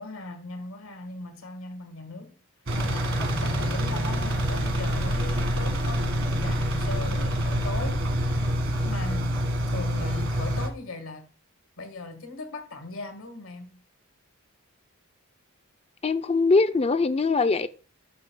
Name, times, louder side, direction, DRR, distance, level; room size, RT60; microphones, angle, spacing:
voice 1, 0.0-2.4 2.8-8.1 8.3-8.5 8.8-11.3 11.8-13.8, left 2 dB, 70° left, 1.5 m, -39 dB
Engine, 2.7-10.7, equal, 65° right, 1.5 m, -26 dB
voice 2, 16.0-17.7, left 3 dB, 30° left, 0.4 m, -22 dB
11.5 x 6.7 x 2.2 m
head